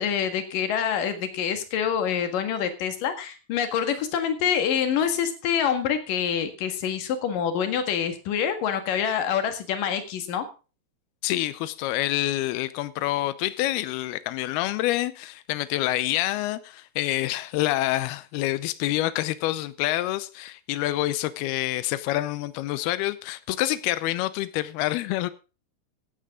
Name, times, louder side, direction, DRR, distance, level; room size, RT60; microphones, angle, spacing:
voice 1, 0.0-10.4, left 8 dB, 55° left, 2.9 m, -26 dB
voice 2, 11.2-25.3, left 15 dB, 90° left, 2.2 m, -27 dB
16.5 x 11.5 x 3.7 m
omnidirectional pair, 5.5 m